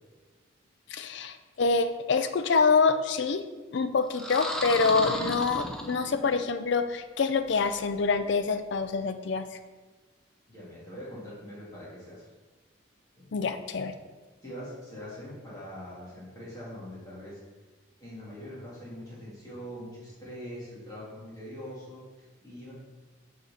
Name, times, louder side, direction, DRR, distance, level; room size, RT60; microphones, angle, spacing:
voice 1, 0.9-3.4 3.7-9.5 13.3-13.9, left 4 dB, 60° left, 10 dB, 0.4 m, -26 dB
sound 1, 4.1-6.4, equal, 5° left, 0.5 m, -34 dB
voice 2, 10.5-12.2 13.2-13.3 14.4-17.4 18.0-22.7, equal, 20° left, -8 dB, 2.4 m, -43 dB
8.0 x 4.8 x 4.1 m, 1.3 s
head